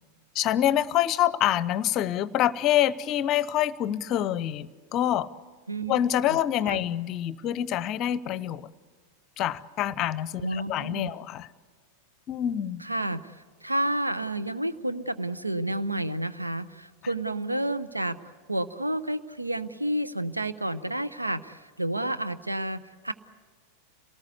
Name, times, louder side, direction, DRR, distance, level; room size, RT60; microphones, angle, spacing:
voice 1, 0.3-5.3 5.9-8.7 9.4-11.5 12.3-12.8, left 11 dB, 35° left, 20 dB, 0.7 m, -26 dB
voice 2, 5.7-6.0 6.3-6.4 6.7-6.8 10.4-11.1 12.8-13.3 13.6-18.2 18.5-23.1, right 1 dB, 85° right, 12 dB, 0.8 m, -30 dB
27.0 x 19.0 x 8.2 m, 1.6 s
figure-of-eight pair, 90°, 0 cm